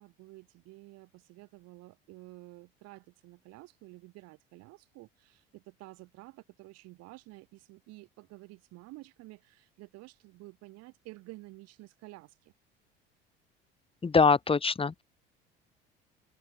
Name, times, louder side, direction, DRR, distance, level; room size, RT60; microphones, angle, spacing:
voice 1, 0.0-12.5, right 20 dB, 55° right, 7.5 m, -51 dB
voice 2, 14.0-15.0, left 4 dB, 20° left, 1.7 m, -23 dB
figure-of-eight pair, 65°, 30 cm